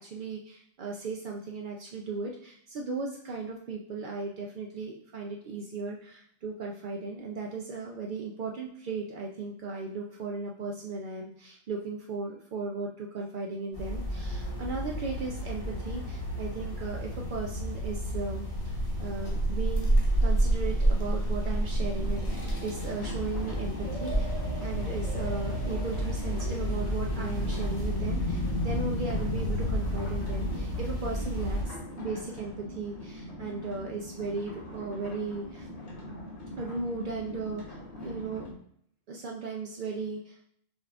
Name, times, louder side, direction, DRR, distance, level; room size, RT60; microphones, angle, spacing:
voice 1, 0.0-19.9 20.2-24.3 24.6-35.7 36.6-38.5 39.1-40.4, right 3 dB, 80° right, 0 dB, 0.4 m, -36 dB
sound 1, 13.7-31.6, equal, 20° left, 0.9 m, -30 dB
sound 2, 19.4-28.0, right 3 dB, 35° right, 0.8 m, -40 dB
sound 3, 22.0-38.5, left 1 dB, 60° left, 1.3 m, -43 dB
5.4 x 2.4 x 3.3 m, 0.67 s
omnidirectional pair, 1.4 m